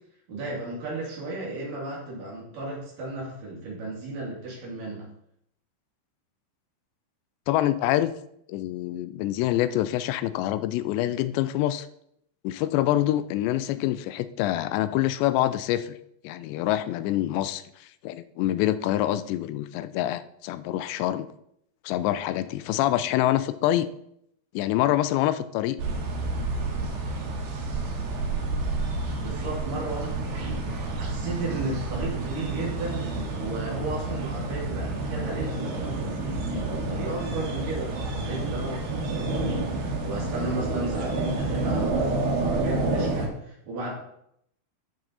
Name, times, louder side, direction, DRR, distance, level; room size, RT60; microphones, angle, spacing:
voice 1, 0.3-5.1 29.2-30.6 30.9-43.9, right 2 dB, 50° right, -4 dB, 4.1 m, -34 dB
voice 2, 7.5-8.1 8.5-11.9 12.4-16.0 16.2-21.3 21.9-23.9 24.5-25.8, left 13 dB, 85° left, 14 dB, 2.7 m, -26 dB
sound 1, 25.8-43.3, right 2 dB, 70° right, 3.6 m, -29 dB
12.5 x 6.0 x 4.1 m, 0.74 s
omnidirectional pair, 5.1 m